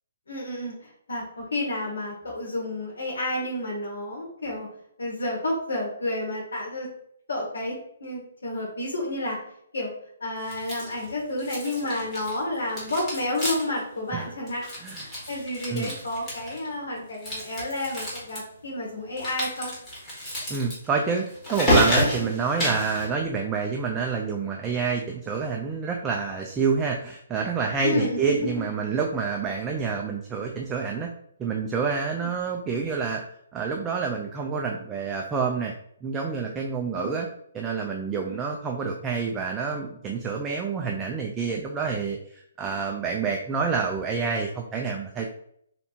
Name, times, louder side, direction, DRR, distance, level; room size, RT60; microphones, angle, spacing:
voice 1, 0.3-4.7 5.0-6.9 7.3-7.7 8.0-9.4 9.7-9.9 10.2-14.7 14.9-19.7 22.2-22.4 27.8-28.5 32.2-32.3 36.9-37.2 38.2-38.4, left 1 dB, 90° left, -3 dB, 1.5 m, -30 dB
sound 1, 10.5-11.1 11.4-12.4 12.7-13.8 14.1-14.2 14.5-16.7 17.1-18.4 19.2-23.1, left 1 dB, 10° left, 1.4 m, -29 dB
voice 2, 20.5-31.1 31.4-33.2 33.5-35.7 36.0-37.3 37.5-45.3, right 5 dB, 10° right, 0 dB, 0.3 m, -28 dB
3.4 x 2.7 x 4.3 m, 0.69 s
hypercardioid pair, 165°, 0 cm